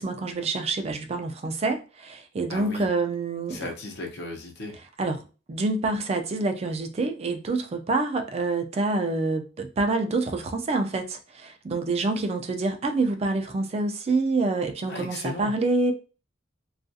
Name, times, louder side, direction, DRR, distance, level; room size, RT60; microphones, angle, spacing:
voice 1, 0.0-3.7 5.0-15.9, right 3 dB, 30° right, 0.4 m, -27 dB
voice 2, 2.5-2.9 3.5-4.8 14.9-15.5, left 2 dB, 60° left, 0.7 m, -35 dB
2.3 x 2.3 x 2.6 m
head